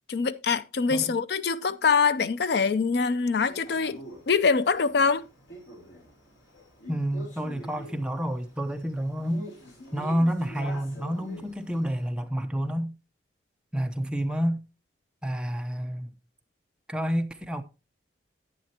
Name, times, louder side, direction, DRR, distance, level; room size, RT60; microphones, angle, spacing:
voice 1, 0.1-4.0 4.3-5.3, left 5 dB, 60° left, 0.4 m, -24 dB
voice 2, 0.9-1.2 6.9-9.5 9.9-12.9 13.7-14.6 15.2-16.1 16.9-17.6, equal, 5° right, 0.6 m, -29 dB
Male speech man speaking, 3.5-12.0, equal, 85° left, 3.4 m, -46 dB
10.5 x 9.2 x 2.8 m
head